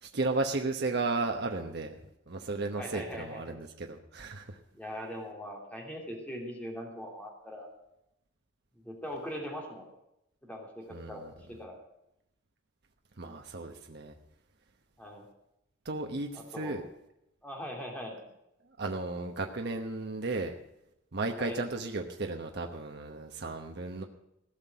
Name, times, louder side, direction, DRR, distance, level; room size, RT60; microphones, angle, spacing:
voice 1, 0.0-1.9 2.3-4.6 10.9-11.3 13.2-14.1 15.8-16.8 18.8-20.5 21.1-24.0, right 3 dB, 55° right, 3 dB, 1.0 m, -34 dB
voice 2, 2.7-3.6 4.7-7.7 8.8-9.9 10.4-11.2 11.5-11.7 15.0-15.2 16.5-16.8 17.4-18.2 21.4-21.6, equal, 5° left, 0 dB, 3.1 m, -41 dB
16.5 x 6.0 x 9.3 m, 0.83 s
head